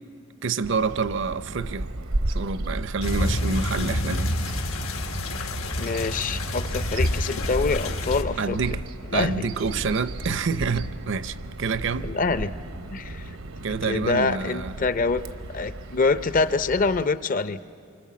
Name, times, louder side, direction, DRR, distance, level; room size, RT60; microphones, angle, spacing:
voice 1, 0.4-1.9 2.3-4.3 8.4-8.9 9.1-12.1 13.6-14.7, right 4 dB, 60° right, 0.6 m, -27 dB
Bird vocalization bird call bird song, 0.6-17.0, right 1 dB, 80° right, 1.0 m, -35 dB
sound 1, 3.0-8.2, left 1 dB, 85° left, 1.6 m, -28 dB
voice 2, 5.8-8.6 9.1-9.4 12.0-12.5 12.9-13.2 13.8-15.2 15.5-17.6, left 3 dB, 40° left, 0.6 m, -25 dB
Purr, 6.6-12.9 13.6-13.7, left 1 dB, 60° left, 1.1 m, -35 dB
27.5 x 25.0 x 7.5 m
head